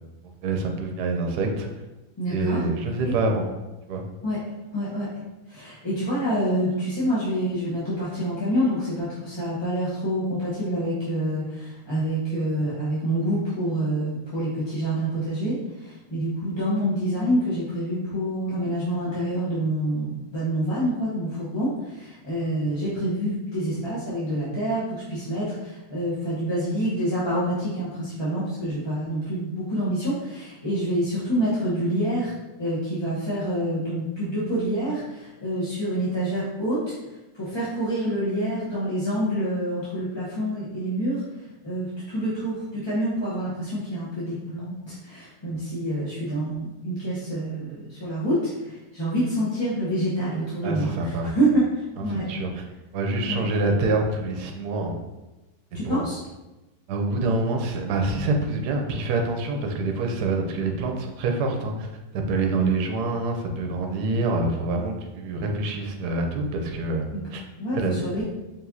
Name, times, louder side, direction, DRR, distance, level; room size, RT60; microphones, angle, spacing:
voice 1, 0.4-1.7 2.3-3.5 3.9-4.0 50.6-51.3 52.0-52.6 52.9-55.0 55.8-56.0 56.9-61.9 62.1-67.1 67.3-67.4 67.7-68.1, right 2 dB, 80° right, 2 dB, 1.2 m, -26 dB
voice 2, 2.2-2.6 3.0-3.1 4.2-4.4 4.7-5.1 5.5-36.8 37.3-41.2 41.6-52.3 53.3-53.4 55.7-56.2 62.5-62.7 67.1-67.2 67.6-68.2, right 1 dB, 20° left, -11 dB, 0.7 m, -27 dB
4.7 x 3.3 x 2.7 m, 1.0 s
omnidirectional pair, 1.7 m